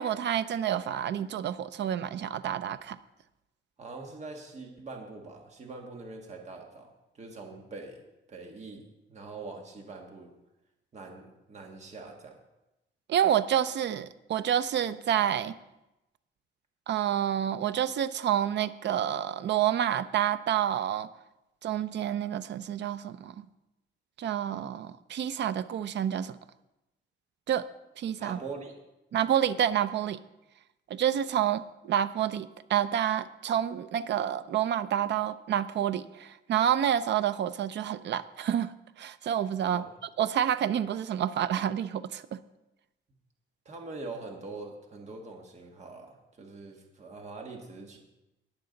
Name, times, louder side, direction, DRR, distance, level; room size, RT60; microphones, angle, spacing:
voice 1, 0.0-3.0 13.1-15.5 16.9-21.1 21.6-23.5 24.2-26.4 27.5-27.7 28.0-28.4 29.1-30.2 30.9-39.8 40.2-42.4, right 10 dB, 60° right, 13 dB, 0.5 m, -28 dB
voice 2, 3.8-8.0 8.3-8.8 9.1-10.3 10.9-12.3 28.2-28.7 39.7-39.9 43.6-48.0, right 3 dB, 35° right, 1 dB, 1.6 m, -43 dB
19.5 x 6.9 x 4.0 m, 0.94 s
wide cardioid pair, 165°, 21 cm